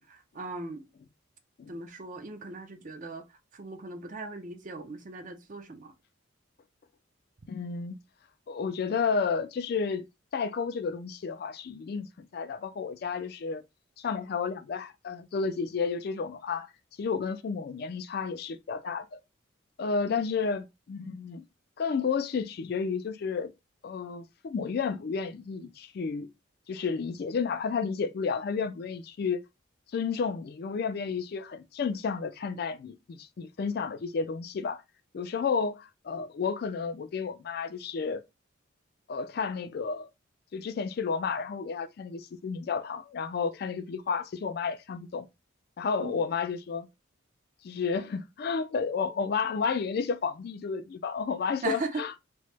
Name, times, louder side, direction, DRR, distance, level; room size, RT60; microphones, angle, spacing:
voice 1, 0.1-0.8 1.7-3.2 3.5-5.9 20.1-20.2 46.0-46.2 51.6-52.0, right 3 dB, 40° right, 0.5 m, -38 dB
voice 2, 7.5-8.0 8.5-10.1 10.3-13.6 14.0-16.7 17.0-19.2 19.8-21.4 21.8-23.5 23.8-26.3 26.7-29.4 29.9-34.8 35.1-38.2 39.1-40.1 40.5-45.3 45.8-46.9 47.6-52.2, left 5 dB, 50° left, 0.3 m, -31 dB
2.9 x 2.1 x 3.2 m
head